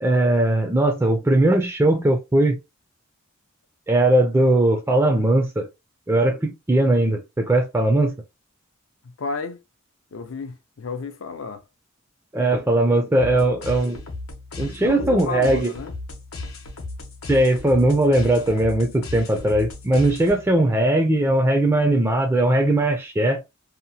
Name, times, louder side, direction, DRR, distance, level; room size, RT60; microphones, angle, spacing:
voice 1, 0.0-2.6 3.9-5.7 6.1-8.1 12.3-14.0 14.6-15.7 17.3-23.4, right 1 dB, 10° right, 0.3 m, -19 dB
voice 2, 9.0-9.6 10.1-11.6 14.8-15.9, left 4 dB, 70° left, 0.5 m, -32 dB
sound 1, 13.2-20.6, left 2 dB, 85° left, 0.8 m, -35 dB
2.8 x 2.0 x 2.7 m
head